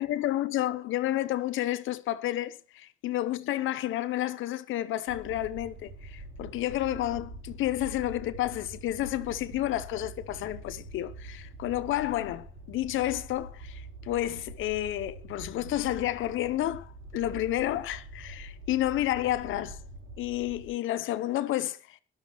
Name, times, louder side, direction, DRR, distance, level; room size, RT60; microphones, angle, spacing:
voice 1, 0.0-19.8 20.2-22.0, left 14 dB, 80° left, 0.8 m, -30 dB
sound 1, 5.1-20.7, right 2 dB, 75° right, 7.6 m, -45 dB
18.5 x 12.0 x 3.0 m
cardioid pair, 90°, 20 cm